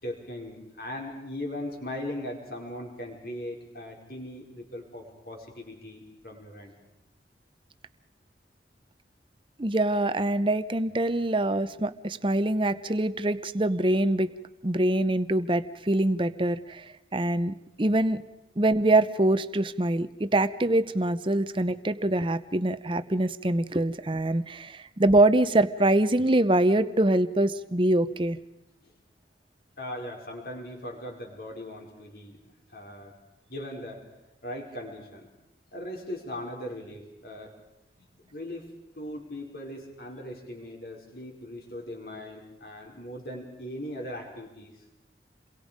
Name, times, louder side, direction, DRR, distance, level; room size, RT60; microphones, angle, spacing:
voice 1, 0.0-6.7 28.8-28.9 29.8-32.4 32.7-33.1 33.5-34.0 34.4-35.3 35.7-37.5 38.0-38.7 38.9-44.8, left 1 dB, 60° left, 0 dB, 5.0 m, -39 dB
voice 2, 9.6-14.3 14.6-18.2 18.6-28.4, right 1 dB, 30° right, 13 dB, 0.8 m, -24 dB
29.0 x 22.5 x 5.2 m, 0.94 s
head